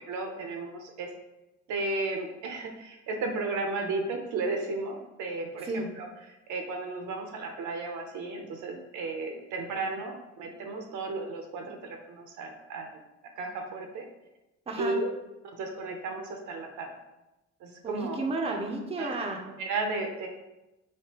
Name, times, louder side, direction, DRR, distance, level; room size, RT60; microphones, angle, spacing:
voice 1, 0.1-1.1 1.7-6.1 6.5-13.0 13.4-14.1 14.8-15.1 15.4-16.9 17.6-18.2 19.0-19.1 19.6-20.3, right 3 dB, 80° right, 4 dB, 0.6 m, -34 dB
voice 2, 5.6-6.0 14.7-15.0 17.8-19.4, right 2 dB, 20° right, 2 dB, 0.5 m, -32 dB
3.3 x 2.7 x 2.9 m, 0.98 s
cardioid pair, 90°, 30 cm